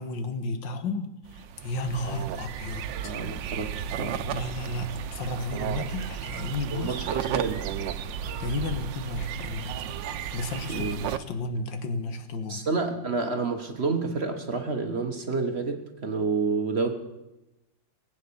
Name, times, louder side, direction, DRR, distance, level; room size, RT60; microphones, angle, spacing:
voice 1, 0.0-3.1 4.3-7.1 8.4-9.8 10.3-12.7, left 2 dB, 85° left, 9 dB, 1.9 m, -33 dB
sound 1, 1.3-11.2, right 9 dB, 80° right, 1.4 m, -34 dB
voice 2, 3.0-4.2 6.7-7.6 10.7-11.0 12.5-16.9, right 4 dB, 40° right, 6 dB, 1.3 m, -29 dB
20.0 x 8.5 x 7.0 m, 0.95 s
omnidirectional pair, 2.0 m